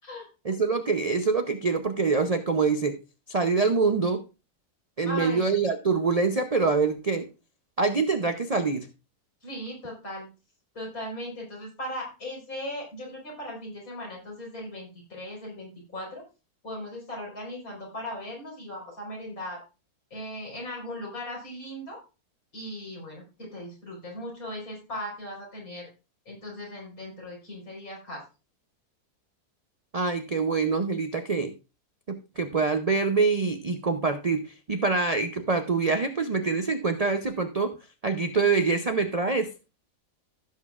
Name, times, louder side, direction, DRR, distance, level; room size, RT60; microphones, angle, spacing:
voice 1, 0.4-3.0 3.3-4.2 5.0-7.3 7.8-8.9 29.9-31.5 32.1-34.4 34.7-37.7 38.0-39.5, right 4 dB, 45° right, 7 dB, 0.5 m, -25 dB
voice 2, 5.0-5.5 9.4-10.3 10.7-16.2 16.6-19.6 20.1-22.0 22.5-25.9 26.3-28.2, left 1 dB, 65° left, -2 dB, 5.0 m, -38 dB
16.0 x 7.4 x 2.4 m, 0.31 s
omnidirectional pair, 1.7 m